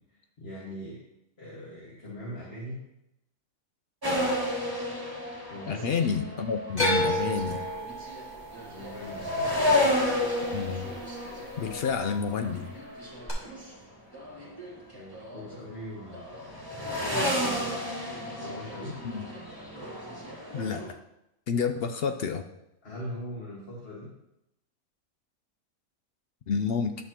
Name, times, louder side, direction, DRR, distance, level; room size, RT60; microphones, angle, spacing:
voice 1, 0.4-1.0 1.4-2.8 5.5-6.1 8.7-9.5 14.9-16.5 16.8-17.9 18.4-19.0 22.8-24.1, equal, 45° left, -6 dB, 1.9 m, -41 dB
sound 1, 4.0-13.7 14.1-15.8 16.1-20.9, left 1 dB, 15° right, 1.7 m, -32 dB
voice 2, 5.7-7.6 10.5-10.9 11.6-12.7 19.1-19.3 20.5-21.0 21.5-22.4 26.5-27.0, left 6 dB, 65° left, 7 dB, 0.6 m, -29 dB
sound 2, 6.8-11.0 11.2-11.9 13.3-13.4, equal, 30° left, 2.0 m, -31 dB
11.0 x 6.4 x 2.9 m, 0.87 s
omnidirectional pair, 1.5 m